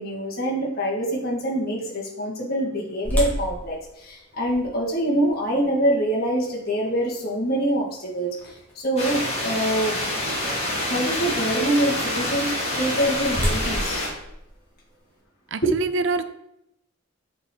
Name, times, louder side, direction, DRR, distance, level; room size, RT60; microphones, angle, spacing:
voice 1, 0.0-9.9 10.9-14.0 15.6-15.7, right 1 dB, 45° left, -4 dB, 1.9 m, -25 dB
sound 1, 3.0-9.0 9.5-9.6 10.2-10.5 12.5-15.2, equal, 10° left, 1.5 m, -32 dB
sound 2, 9.0-14.1, left 1 dB, 30° left, 2.2 m, -27 dB
voice 2, 15.5-16.2, right 3 dB, 60° right, 11 dB, 0.5 m, -25 dB
7.7 x 4.0 x 4.5 m, 0.82 s
head